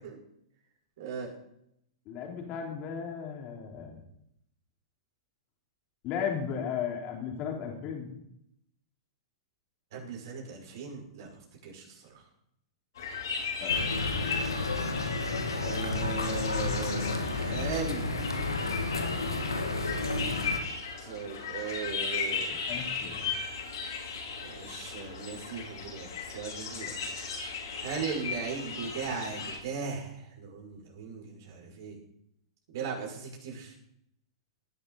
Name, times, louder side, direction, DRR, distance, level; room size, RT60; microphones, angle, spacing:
voice 1, 1.0-1.3 9.9-11.3 11.6-12.2 14.5-14.7 15.6-18.2 21.0-22.5 24.4-26.9 27.8-31.9 32.7-33.7, right 6 dB, 60° right, -1 dB, 6.0 m, -38 dB
voice 2, 2.0-4.0 6.0-8.1 13.6-13.8 22.7-23.3, left 7 dB, 40° left, 1 dB, 3.5 m, -35 dB
sound 1, 13.0-29.6, left 5 dB, 65° left, 4.9 m, -37 dB
sound 2, 13.7-20.6, left 3 dB, 90° left, 2.1 m, -31 dB
18.5 x 11.5 x 4.1 m, 0.76 s
figure-of-eight pair, 105°, 2 cm